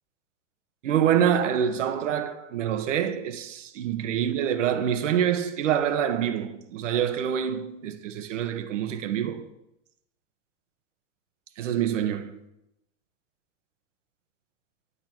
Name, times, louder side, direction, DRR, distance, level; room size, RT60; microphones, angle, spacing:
voice 1, 0.8-9.5 11.6-12.4, right 9 dB, 85° right, 1.4 m, -26 dB
11.5 x 9.7 x 4.5 m
supercardioid pair, 170°, 36 cm